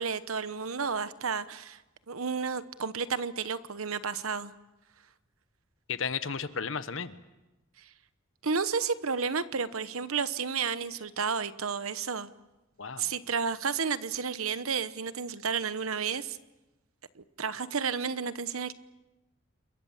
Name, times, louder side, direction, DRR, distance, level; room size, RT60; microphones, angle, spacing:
voice 1, 0.0-1.8 2.1-4.5 7.8-7.9 8.4-12.3 13.0-16.4 17.2-18.7, right 5 dB, 85° right, 14 dB, 1.0 m, -32 dB
voice 2, 5.9-7.2 12.8-13.1, left 5 dB, 70° left, 12 dB, 1.2 m, -34 dB
28.5 x 23.0 x 7.3 m, 1.0 s
head